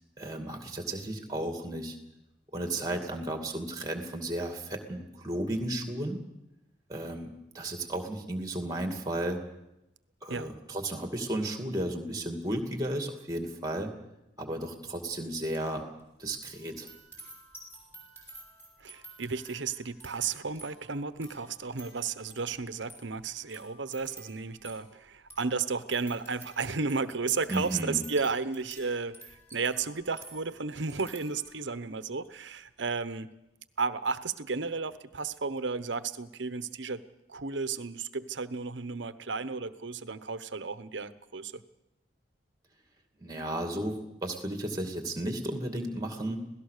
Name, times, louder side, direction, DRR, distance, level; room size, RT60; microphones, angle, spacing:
voice 1, 0.2-2.0 2.5-6.2 6.9-7.3 7.5-9.4 10.2-13.9 14.4-15.9 16.2-16.9 27.5-28.0 43.2-46.4, right 1 dB, 20° right, 5 dB, 2.5 m, -34 dB
sound 1, 15.2-15.7 16.0-31.8 32.2-32.5, right 2 dB, 10° left, 5.9 m, -52 dB
voice 2, 18.8-33.3 33.8-37.0 37.3-41.6, right 4 dB, 75° right, 13 dB, 1.0 m, -33 dB
26.5 x 17.5 x 6.7 m, 0.91 s
head